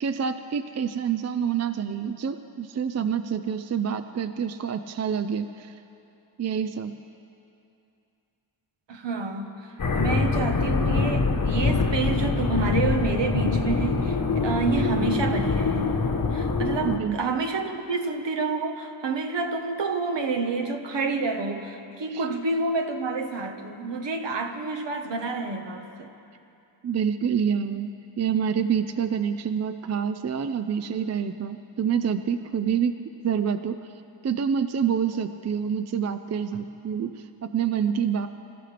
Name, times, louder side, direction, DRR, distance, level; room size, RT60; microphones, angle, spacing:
voice 1, 0.0-5.8 6.4-6.9 16.8-17.2 22.1-22.3 26.8-27.9 28.2-32.9 33.2-33.8 34.2-38.3, right 7 dB, 35° right, 10 dB, 0.4 m, -27 dB
voice 2, 8.9-9.5 9.9-16.0 16.3-26.1, right 4 dB, 70° right, 5 dB, 1.3 m, -28 dB
sound 1, 9.8-17.0, left 4 dB, 45° left, 1.1 m, -24 dB
26.5 x 14.5 x 3.4 m, 2.7 s
wide cardioid pair, 125°, 45 cm